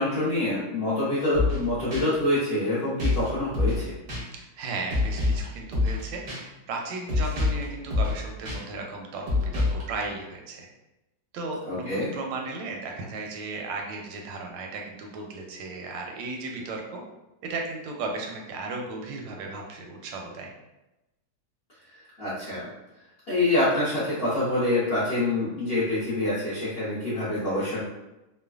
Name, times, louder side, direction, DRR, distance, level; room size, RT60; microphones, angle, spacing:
voice 1, 0.0-3.9 11.7-12.1 21.9-22.7 23.3-27.8, left 1 dB, 60° left, -11 dB, 0.6 m, -26 dB
sound 1, 1.3-1.6 1.9-2.0 3.0-3.3 3.5-3.8 4.1-4.2 4.9-5.4 5.7-6.0 6.3-6.4 7.1-7.6 7.9-8.2 8.4-8.6 9.3-9.8, left 3 dB, 60° right, 0.5 m, -25 dB
voice 2, 4.3-10.7 11.3-17.0 17.4-20.5, right 3 dB, 85° right, 1 dB, 1.3 m, -35 dB
3.1 x 2.1 x 2.3 m, 0.98 s
omnidirectional pair, 2.0 m